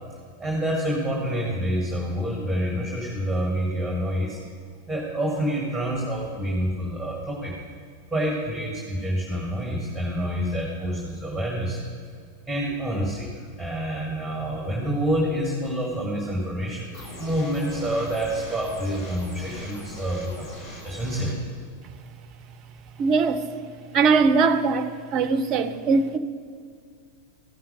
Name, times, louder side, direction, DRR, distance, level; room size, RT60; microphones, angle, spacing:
voice 1, 0.4-4.4 4.9-7.5 8.1-11.8 12.5-21.4, equal, 5° right, 1.6 m, -27 dB
sound 1, 16.9-21.3, left 1 dB, 40° left, 2.8 m, -40 dB
voice 2, 23.0-23.5 23.9-26.2, right 4 dB, 35° right, 0.6 m, -21 dB
14.5 x 5.7 x 4.9 m
figure-of-eight pair, 90°, 0 cm